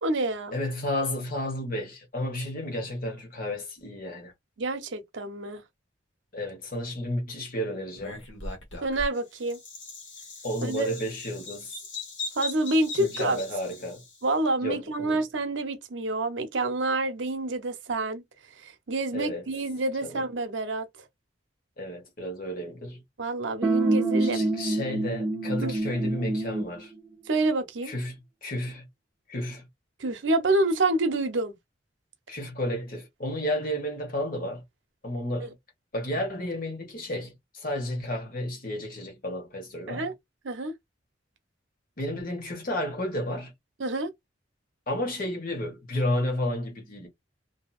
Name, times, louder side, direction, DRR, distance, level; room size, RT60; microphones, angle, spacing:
voice 1, 0.0-0.5 4.6-5.6 8.8-9.6 10.6-10.9 12.4-13.4 14.2-18.2 18.6-20.9 23.2-24.4 25.6-25.7 27.3-27.9 30.0-31.5 35.4-35.5 39.9-40.1 40.4-40.7 43.8-44.1, right 2 dB, 85° right, 0.8 m, -27 dB
voice 2, 0.5-4.3 6.3-8.2 10.4-11.8 12.9-14.0 14.6-15.2 19.1-19.5 20.0-20.3 21.8-23.0 24.2-26.9 27.8-28.8 29.3-29.6 32.3-34.6 35.0-35.6 35.9-40.1 42.0-43.5 44.9-47.1, left 1 dB, 50° left, 1.2 m, -32 dB
Bird vocalization bird call bird song, 8.0-14.2, left 3 dB, 85° left, 1.2 m, -39 dB
sound 1, 23.6-26.8, right 2 dB, 5° right, 1.2 m, -26 dB
2.7 x 2.7 x 2.3 m
head